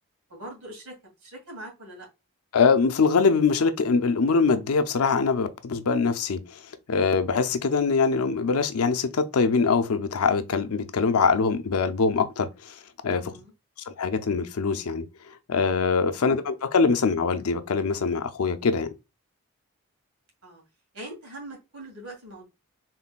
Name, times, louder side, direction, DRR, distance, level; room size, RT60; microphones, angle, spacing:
voice 1, 0.3-1.0 1.2-2.1 13.1-13.5 20.4-20.6 20.9-22.4, right 1 dB, 70° right, 2.2 m, -42 dB
voice 2, 2.5-6.6 6.9-13.4 13.9-15.1 15.5-18.9, left 5 dB, 80° left, 0.6 m, -23 dB
4.1 x 3.8 x 2.2 m
head